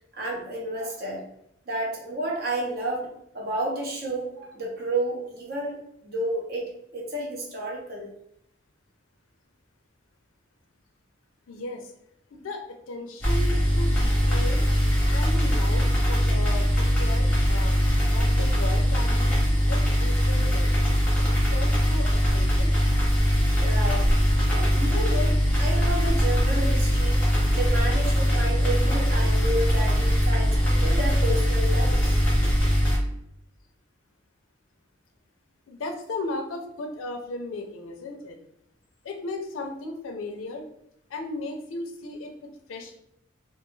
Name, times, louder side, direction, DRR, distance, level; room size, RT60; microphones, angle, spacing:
voice 1, 0.1-1.2 1.7-3.1 3.3-5.8 6.0-6.7 6.9-8.1 23.6-24.1 24.5-27.2 27.5-32.2, right 1 dB, 50° right, -1 dB, 0.7 m, -31 dB
voice 2, 11.5-11.9 12.3-14.6 15.1-17.8 18.1-19.4 19.7-20.7 21.5-22.7 35.7-38.4 39.0-40.6 41.1-42.3 42.7-43.0, left 2 dB, 80° left, 3 dB, 0.4 m, -36 dB
sound 1, 13.2-33.0, equal, 5° left, 0.8 m, -21 dB
2.3 x 2.2 x 3.0 m, 0.75 s
head